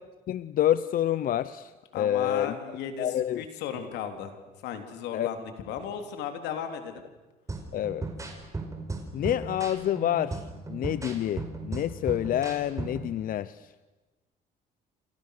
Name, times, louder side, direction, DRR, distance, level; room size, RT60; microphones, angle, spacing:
voice 1, 0.3-2.5 3.0-3.4 5.1-5.3 7.7-8.1 9.1-10.4 10.7-13.7, left 11 dB, 55° left, 15 dB, 0.8 m, -28 dB
voice 2, 1.9-4.3 4.6-7.0, left 8 dB, 85° left, 6 dB, 3.7 m, -35 dB
sound 1, 7.5-13.1, right 3 dB, 20° right, 5.2 m, -37 dB
29.0 x 28.0 x 6.8 m, 1.2 s
cardioid pair, 110°, 17 cm